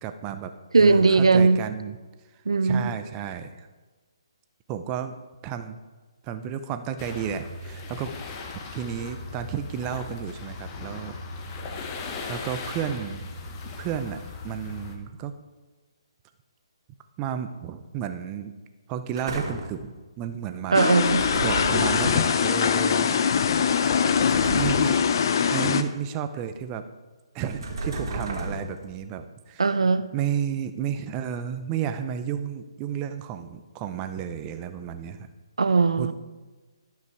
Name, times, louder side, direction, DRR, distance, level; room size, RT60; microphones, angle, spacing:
voice 1, 0.0-0.5 0.8-2.0 2.6-3.7 4.7-5.1 5.4-5.8 6.2-8.1 8.7-11.2 12.3-13.3 13.8-15.3 17.2-18.5 18.9-20.8 21.4-23.2 24.5-25.0 25.5-26.8 27.3-29.6 30.1-35.3 36.0-36.1, right 8 dB, 20° right, 9 dB, 0.5 m, -32 dB
voice 2, 0.7-1.6 2.5-3.0 20.7-21.2 29.6-30.1 35.6-36.1, right 4 dB, 90° right, 12 dB, 0.6 m, -19 dB
sound 1, 7.0-15.0, left 3 dB, 25° left, 1.0 m, -38 dB
sound 2, 19.2-19.8 21.0-22.5 24.1-25.1 27.5-28.9, right 2 dB, 50° right, 2.2 m, -32 dB
sound 3, 20.7-25.8, left 7 dB, 50° left, 0.5 m, -22 dB
12.0 x 5.8 x 4.5 m, 1.3 s
hypercardioid pair, 155°, 3 cm